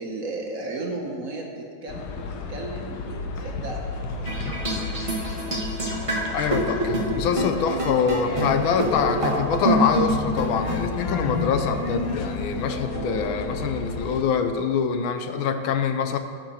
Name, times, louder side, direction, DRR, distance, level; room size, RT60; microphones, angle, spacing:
voice 1, 0.0-4.3, right 2 dB, 50° right, 0 dB, 1.2 m, -34 dB
sound 1, 1.9-14.2, left 4 dB, 60° left, 1.2 m, -34 dB
sound 2, 4.3-13.7, right 1 dB, 20° right, 1.4 m, -27 dB
voice 2, 6.3-16.2, left 6 dB, 80° left, 8 dB, 1.5 m, -25 dB
15.5 x 6.0 x 4.3 m, 2.5 s
omnidirectional pair, 2.2 m